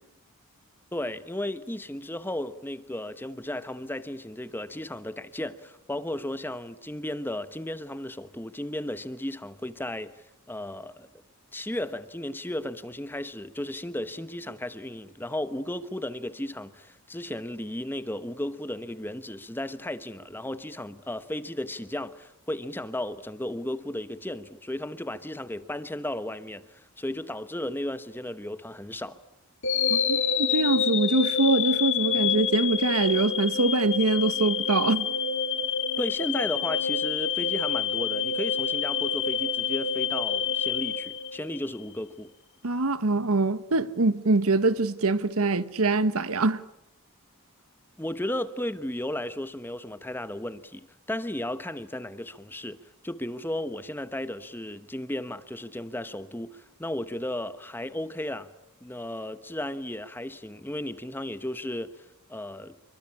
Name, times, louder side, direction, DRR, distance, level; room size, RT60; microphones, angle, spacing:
voice 1, 0.9-11.1 11.5-29.2 36.0-42.3 48.0-58.5 58.8-62.0 62.3-62.8, left 1 dB, 10° left, 1.0 m, -34 dB
sound 1, 29.6-41.8, left 6 dB, 60° left, 2.1 m, -27 dB
voice 2, 29.9-35.1 42.6-46.6, right 2 dB, 75° right, 1.2 m, -24 dB
27.5 x 24.0 x 8.6 m
head